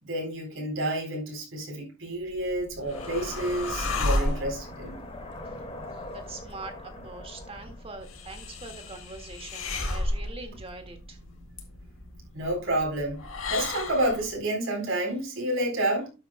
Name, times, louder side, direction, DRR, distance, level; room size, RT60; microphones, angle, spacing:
voice 1, 0.0-5.0 12.3-16.1, right 1 dB, 65° right, 4.2 m, -29 dB
sound 1, 2.2-14.3, left 2 dB, 80° left, 1.9 m, -34 dB
sound 2, 2.9-8.9, left 2 dB, 30° left, 1.9 m, -43 dB
voice 2, 6.1-11.2, right 3 dB, 30° right, 1.9 m, -43 dB
12.5 x 8.1 x 2.2 m
head